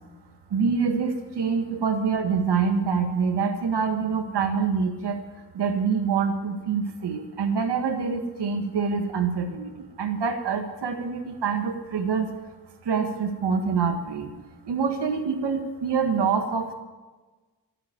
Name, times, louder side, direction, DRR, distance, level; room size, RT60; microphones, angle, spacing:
voice 1, 0.5-5.2 5.5-9.7 10.0-12.3 12.9-14.3 14.7-16.7, right 5 dB, 85° right, 5 dB, 1.7 m, -25 dB
12.0 x 9.1 x 9.4 m, 1.3 s
wide cardioid pair, 130°, 40 cm